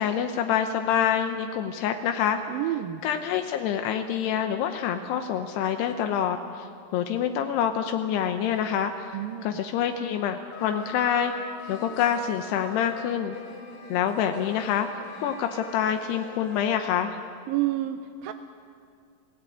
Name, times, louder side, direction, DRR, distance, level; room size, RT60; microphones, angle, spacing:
voice 1, 0.0-2.4 3.0-6.7 6.9-11.3 11.7-13.4 13.9-14.9 15.2-17.2, left 9 dB, 80° left, 6 dB, 2.9 m, -26 dB
voice 2, 2.5-3.0 9.1-9.5 17.5-18.3, right 14 dB, 80° right, 7 dB, 2.2 m, -29 dB
sound 1, 8.5-9.3 10.5-16.9, left 5 dB, 50° left, 4.3 m, -43 dB
27.0 x 17.5 x 8.4 m, 2.2 s
omnidirectional pair, 4.7 m